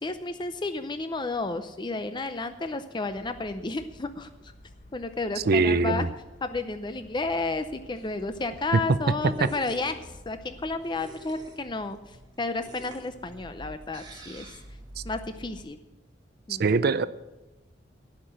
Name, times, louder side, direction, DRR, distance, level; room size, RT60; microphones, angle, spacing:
voice 1, 0.0-4.3 4.9-6.1 6.4-14.6 15.0-15.8 16.5-16.7, left 3 dB, 25° left, 9 dB, 0.6 m, -32 dB
sound 1, 3.1-10.8, left 1 dB, 45° left, 1.5 m, -52 dB
voice 2, 5.4-6.1 8.7-8.8 9.4-9.5 15.0-15.1 16.5-17.0, right 4 dB, 55° right, 14 dB, 0.5 m, -23 dB
sound 2, 7.5-15.6, right 1 dB, 25° right, 2.5 m, -48 dB
17.5 x 5.9 x 7.9 m, 1.1 s
head